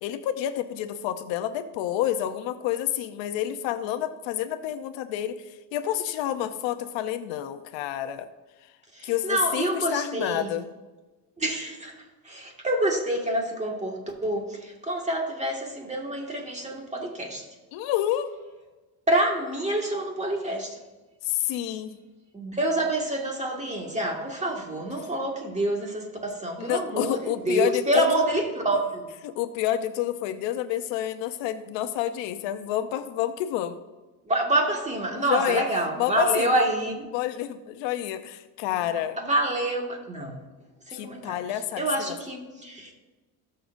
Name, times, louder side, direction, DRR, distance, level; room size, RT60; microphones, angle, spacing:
voice 1, 0.0-5.4 5.7-8.3 9.0-10.7 17.7-18.3 21.2-22.0 26.6-28.1 29.2-33.8 35.1-35.6 36.0-36.7 37.1-39.2 40.9-42.2, left 12 dB, 85° left, 10 dB, 0.8 m, -29 dB
voice 2, 8.9-10.5 11.4-11.9 12.2-17.5 19.1-20.8 22.3-29.1 34.2-37.1 39.2-40.4 40.9-42.9, right 1 dB, 15° right, 0 dB, 1.9 m, -27 dB
18.0 x 6.7 x 2.6 m, 1.2 s
cardioid pair, 115°, 43 cm